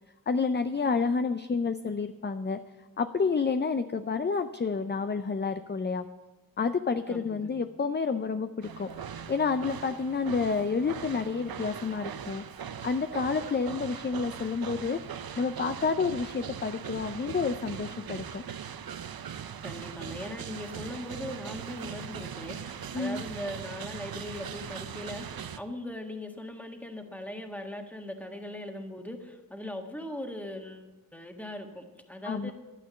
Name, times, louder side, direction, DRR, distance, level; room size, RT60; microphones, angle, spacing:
voice 1, 0.3-2.6 3.0-6.1 6.6-8.9 9.3-12.4 12.8-18.4 22.9-23.2 32.2-32.5, left 5 dB, 30° left, 9 dB, 0.5 m, -29 dB
voice 2, 7.1-7.5 19.6-32.5, left 1 dB, 5° left, 3 dB, 1.5 m, -40 dB
sound 1, 8.6-25.6, right 8 dB, 75° right, 0.6 m, -40 dB
11.5 x 9.3 x 6.9 m, 1.2 s
wide cardioid pair, 75°, 36 cm